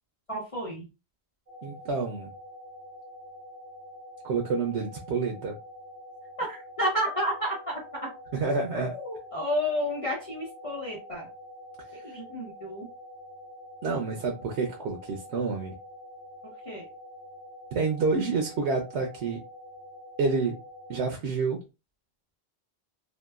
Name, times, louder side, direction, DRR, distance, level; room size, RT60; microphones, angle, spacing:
voice 1, 0.3-0.8 6.4-8.1 8.7-11.3 12.0-12.9 16.4-16.8, equal, 35° left, -6 dB, 0.9 m, -31 dB
sound 1, 1.5-21.0, equal, 45° right, 1.0 m, -46 dB
voice 2, 1.6-2.3 4.2-5.6 8.3-8.9 13.8-15.7 17.7-19.4 20.2-20.5 20.9-21.6, right 4 dB, 90° right, 2 dB, 0.9 m, -28 dB
2.8 x 2.2 x 2.3 m, 0.28 s
omnidirectional pair, 1.1 m